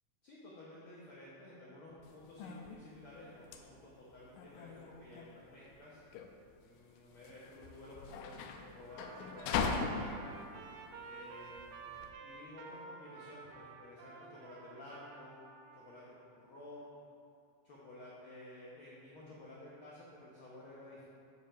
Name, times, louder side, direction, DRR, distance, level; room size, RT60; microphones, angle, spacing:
voice 1, 0.2-6.0 6.6-10.3 11.0-15.3 15.7-17.0 17.6-21.1, left 1 dB, 75° left, -7 dB, 1.2 m, -53 dB
sound 1, 2.0-12.1, left 5 dB, 90° left, 2.2 m, -41 dB
Trumpet, 8.9-16.0, right 4 dB, 85° right, 2.4 m, -51 dB
7.4 x 5.2 x 5.6 m, 2.6 s
omnidirectional pair, 3.8 m